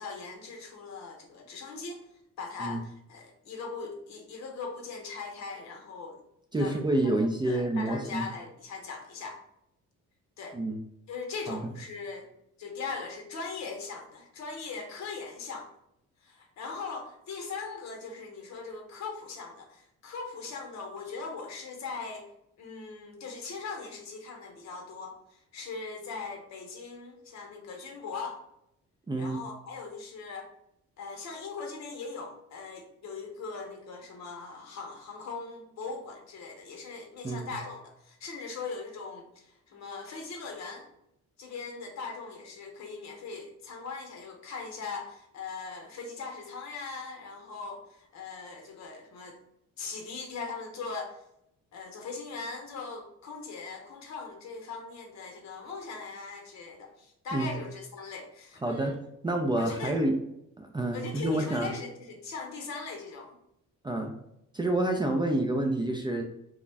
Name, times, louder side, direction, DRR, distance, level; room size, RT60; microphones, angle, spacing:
voice 1, 0.0-2.0 2.4-6.2 6.6-6.8 7.0-7.1 7.4-9.4 10.4-10.6 11.1-12.3 12.6-15.7 16.2-22.3 22.6-28.4 29.2-30.5 31.0-40.9 41.4-49.4 49.8-51.2 51.7-59.0 59.5-60.0 60.9-63.4, left 4 dB, 65° left, 2 dB, 0.8 m, -40 dB
voice 2, 6.5-8.3 10.5-10.8 11.5-11.7 29.1-29.4 37.2-37.5 57.3-57.6 58.6-59.0 59.2-60.1 60.6-61.7 63.8-64.1 64.5-66.2, right 1 dB, 15° right, 2 dB, 0.3 m, -28 dB
2.4 x 2.1 x 3.2 m, 0.79 s
cardioid pair, 90°, 30 cm